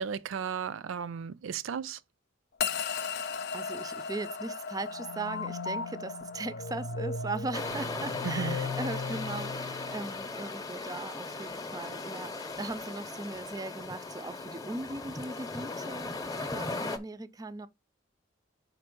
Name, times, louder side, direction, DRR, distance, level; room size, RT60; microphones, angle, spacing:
voice 1, 0.0-2.0 8.2-8.6, right 7 dB, 85° right, 0.4 m, -34 dB
sound 1, 2.6-12.9, left 6 dB, 55° left, 0.5 m, -40 dB
voice 2, 3.1-16.1 16.5-17.7, right 3 dB, 20° right, 0.3 m, -39 dB
sound 2, 4.8-10.3, left 3 dB, 90° left, 0.8 m, -38 dB
sound 3, 7.5-17.0, left 3 dB, 20° left, 0.7 m, -38 dB
5.1 x 4.3 x 5.2 m
head